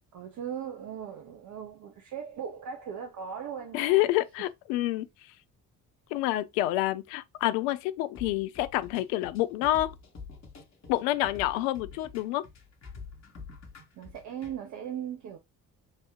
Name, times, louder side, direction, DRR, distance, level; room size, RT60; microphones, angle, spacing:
voice 1, 0.1-4.1 13.9-15.4, right 8 dB, 40° right, 0.7 m, -38 dB
voice 2, 3.7-5.1 6.1-9.9 10.9-12.4, left 15 dB, 60° left, 0.5 m, -28 dB
sound 1, 8.2-14.6, left 5 dB, 35° left, 1.3 m, -47 dB
3.1 x 2.7 x 3.5 m
figure-of-eight pair, 45°, 46 cm